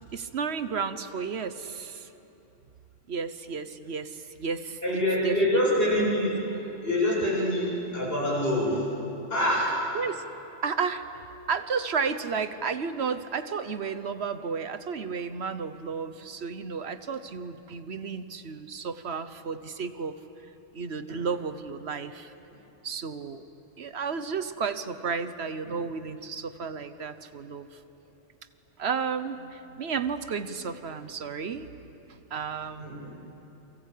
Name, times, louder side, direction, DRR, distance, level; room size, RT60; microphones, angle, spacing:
voice 1, 0.1-2.1 3.1-5.4 9.9-10.2 10.6-20.2 20.7-22.3 22.8-23.4 23.8-27.7 28.8-31.7 32.3-33.1, right 5 dB, 65° right, 11 dB, 1.2 m, -32 dB
voice 2, 4.8-8.9 9.3-9.8 21.1-21.2 32.8-33.1, left 1 dB, 55° left, -4 dB, 8.3 m, -26 dB
29.5 x 23.5 x 8.5 m, 3.0 s
omnidirectional pair, 1.2 m